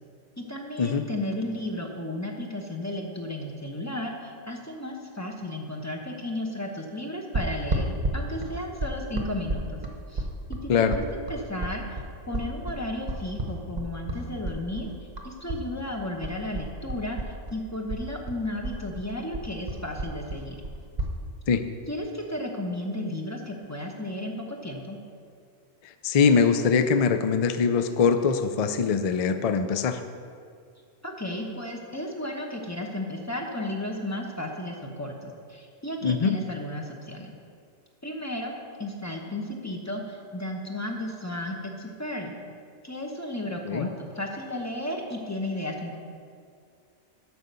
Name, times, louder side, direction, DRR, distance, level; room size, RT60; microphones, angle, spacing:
voice 1, 0.4-7.9 8.1-9.8 10.1-14.9 15.2-17.2 17.5-20.6 21.9-25.0 31.0-37.3 38.0-42.4 42.8-46.0, left 1 dB, 15° left, 1 dB, 0.9 m, -34 dB
sound 1, 7.3-15.6 15.9-17.6 17.9-21.1, right 2 dB, 35° right, 1.1 m, -31 dB
voice 2, 26.0-30.0 36.0-36.3 43.7-43.9, left 5 dB, 70° left, 9 dB, 0.3 m, -22 dB
9.3 x 6.3 x 6.8 m, 2.3 s
omnidirectional pair, 1.4 m